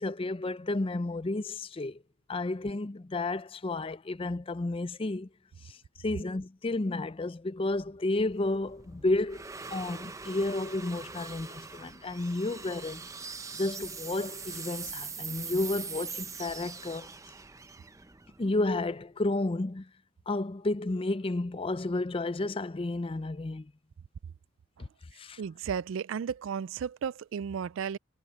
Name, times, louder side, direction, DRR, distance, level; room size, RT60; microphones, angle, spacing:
voice 1, 0.0-2.0 2.3-5.3 5.6-13.0 13.5-17.1 18.4-19.9 20.3-23.7 24.8-24.9 25.2-25.4, left 2 dB, 25° left, 0.5 m, -32 dB
sound 1, 7.8-19.0, right 5 dB, 15° right, 0.6 m, -42 dB
voice 2, 25.4-28.0, right 7 dB, 65° right, 0.3 m, -34 dB
head